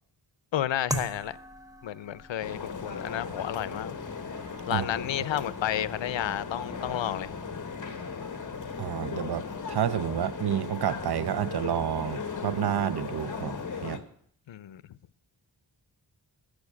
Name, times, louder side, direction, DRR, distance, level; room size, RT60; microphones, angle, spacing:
voice 1, 0.5-1.4 1.8-3.9 4.7-7.3 14.5-14.8, left 11 dB, 85° left, 0.6 m, -31 dB
sound 1, 0.9-9.7, right 2 dB, 10° right, 1.0 m, -44 dB
sound 2, 2.4-14.0, left 5 dB, 45° left, 1.4 m, -37 dB
voice 2, 8.8-14.0, right 10 dB, 60° right, 0.6 m, -30 dB
15.5 x 6.5 x 8.4 m
wide cardioid pair, 140°, 44 cm